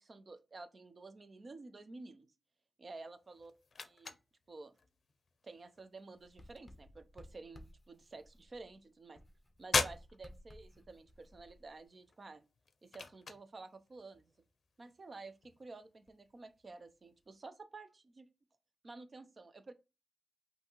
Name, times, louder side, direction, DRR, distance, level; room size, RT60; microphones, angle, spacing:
voice 1, 0.0-2.3 2.8-3.5 3.8-4.2 4.5-4.7 5.4-9.2 9.6-12.5 12.8-14.3 14.8-18.3 18.8-19.7, right 3 dB, 40° right, 0.5 m, -51 dB
sound 1, 2.9-17.4, left 4 dB, 60° left, 0.6 m, -44 dB
Writing, 6.2-8.8 9.1-11.8, left 1 dB, 15° left, 0.8 m, -58 dB
5.8 x 2.8 x 2.9 m
wide cardioid pair, 130°, 0 cm